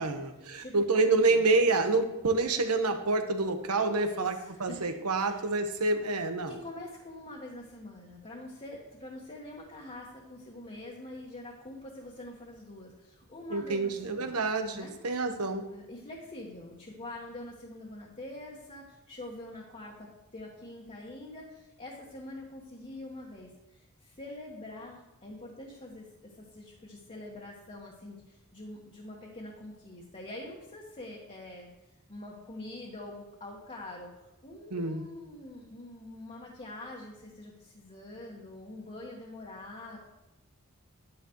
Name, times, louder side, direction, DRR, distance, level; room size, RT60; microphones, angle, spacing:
voice 1, 0.0-4.3 4.6-6.6 13.5-15.6 34.7-35.0, right 3 dB, 90° right, 6 dB, 1.2 m, -27 dB
voice 2, 0.6-1.4 3.8-5.6 6.0-6.1 6.5-14.4 14.7-14.9 15.7-31.7 32.1-40.0, left 1 dB, 30° left, -4 dB, 1.5 m, -45 dB
10.5 x 9.7 x 3.1 m, 1.0 s
head